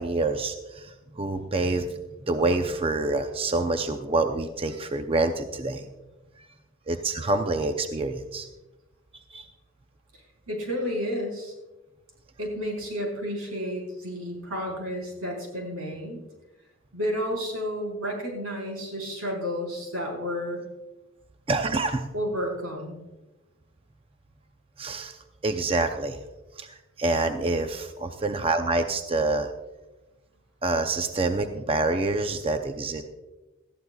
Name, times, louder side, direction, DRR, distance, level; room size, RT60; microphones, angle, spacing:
voice 1, 0.0-5.9 6.9-8.5 9.3-9.5 21.5-22.0 24.8-25.2 25.4-26.2 26.6-29.5 30.6-33.0, right 2 dB, 25° right, 6 dB, 0.6 m, -27 dB
voice 2, 10.5-11.5 12.4-16.2 16.9-20.6 22.1-23.0, equal, 90° right, -1 dB, 4.7 m, -31 dB
19.0 x 13.5 x 2.3 m, 1.1 s
head